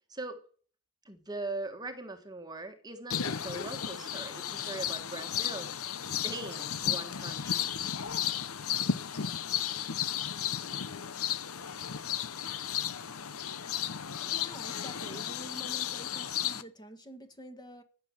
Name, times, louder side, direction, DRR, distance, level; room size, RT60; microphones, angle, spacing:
voice 1, 0.1-0.5 1.0-5.8 6.1-7.7, right 2 dB, 20° right, 1.4 m, -41 dB
sound 1, 3.1-16.6, left 9 dB, 70° left, 0.8 m, -34 dB
voice 2, 13.5-13.9 14.1-17.8, equal, 20° left, 1.7 m, -48 dB
16.5 x 6.8 x 7.4 m
head